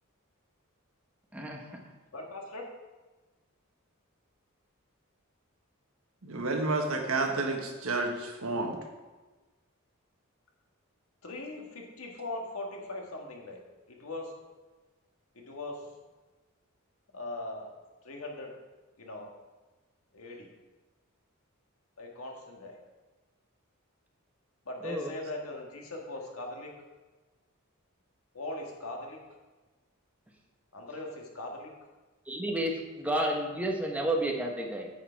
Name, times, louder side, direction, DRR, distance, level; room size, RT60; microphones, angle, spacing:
voice 1, 1.3-1.9 24.8-25.1 32.3-34.9, right 1 dB, 5° right, 1 dB, 1.0 m, -31 dB
voice 2, 2.1-2.7 11.2-13.6 13.9-14.3 15.3-15.9 17.1-17.7 18.0-18.5 19.0-19.3 20.1-20.5 22.0-22.8 24.6-26.7 28.3-29.2 30.7-31.7, left 2 dB, 85° left, 0 dB, 1.7 m, -40 dB
voice 3, 6.2-8.8, right 3 dB, 80° right, 3 dB, 1.4 m, -30 dB
9.0 x 6.7 x 4.6 m, 1.2 s
head